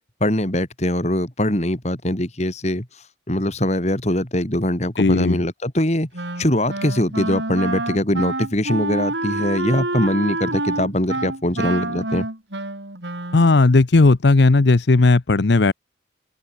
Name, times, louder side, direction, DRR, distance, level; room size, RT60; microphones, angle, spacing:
voice 1, 0.2-2.9 3.3-6.1 6.4-12.3, left 1 dB, 35° left, 2.9 m, -22 dB
voice 2, 5.0-5.4 13.3-15.7, left 3 dB, 70° left, 0.7 m, -15 dB
Wind instrument woodwind instrument, 6.1-13.6, right 2 dB, 75° right, 5.7 m, -27 dB
head